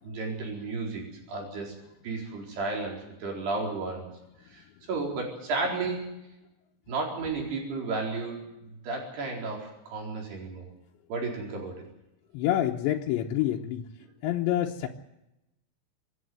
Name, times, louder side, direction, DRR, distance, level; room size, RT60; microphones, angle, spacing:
voice 1, 0.0-1.7 2.0-4.1 4.5-6.2 6.9-10.7 11.1-11.8, right 3 dB, 65° right, 0 dB, 6.3 m, -33 dB
voice 2, 12.3-13.9 14.2-14.9, left 12 dB, 90° left, 0 dB, 3.3 m, -27 dB
26.5 x 11.0 x 9.4 m, 0.88 s
omnidirectional pair, 5.1 m